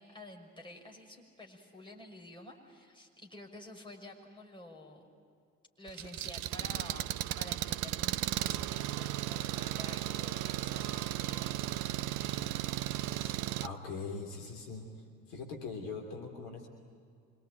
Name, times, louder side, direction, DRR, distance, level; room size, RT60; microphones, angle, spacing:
voice 1, 0.0-5.1 5.8-11.5 12.0-13.4, left 1 dB, 10° left, 1 dB, 6.0 m, -51 dB
Engine, 5.9-13.7, right 14 dB, 50° right, 0.7 m, -35 dB
voice 2, 13.6-14.9 15.3-16.7, left 4 dB, 60° left, 2 dB, 3.3 m, -41 dB
26.0 x 24.0 x 9.3 m, 2.3 s
figure-of-eight pair, 55°, 39 cm